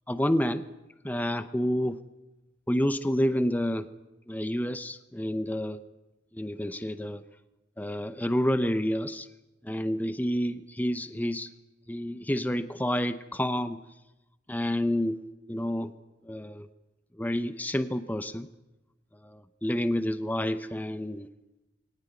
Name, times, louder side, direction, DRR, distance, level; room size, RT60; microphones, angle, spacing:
voice 1, 0.1-0.7 1.0-2.0 2.7-3.9 4.3-5.8 6.3-7.2 7.8-9.3 9.6-11.5 11.9-13.8 14.5-15.2 15.5-15.9 16.2-16.7 17.2-18.5 19.2-21.3, equal, 10° left, 11 dB, 0.7 m, -29 dB
23.0 x 18.0 x 9.5 m, 1.0 s
head